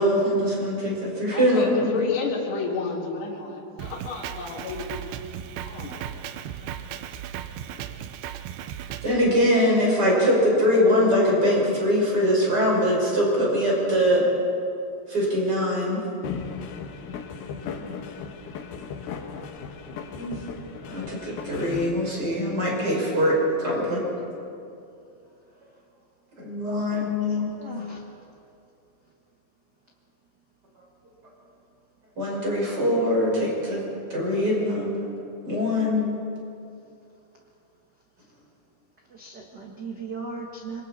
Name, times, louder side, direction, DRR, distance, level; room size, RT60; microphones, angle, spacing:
voice 1, 0.0-2.0 9.0-14.3 15.1-16.0 19.9-20.4 20.8-24.1 26.4-27.5 32.2-33.8 34.1-34.9 35.4-36.2, equal, 25° right, -3 dB, 5.8 m, -22 dB
voice 2, 1.3-5.0 5.6-6.0 6.6-6.9 7.7-8.0 17.4-18.0, left 4 dB, 55° left, -3 dB, 4.0 m, -32 dB
Drum kit, 3.8-9.1, right 10 dB, 85° right, 2.8 m, -36 dB
sound 1, 16.2-21.9, left 6 dB, 70° left, 3.0 m, -36 dB
voice 3, 27.6-28.1 39.1-40.8, right 4 dB, 65° right, -1 dB, 1.0 m, -37 dB
26.5 x 23.5 x 4.3 m, 2.6 s
omnidirectional pair, 4.6 m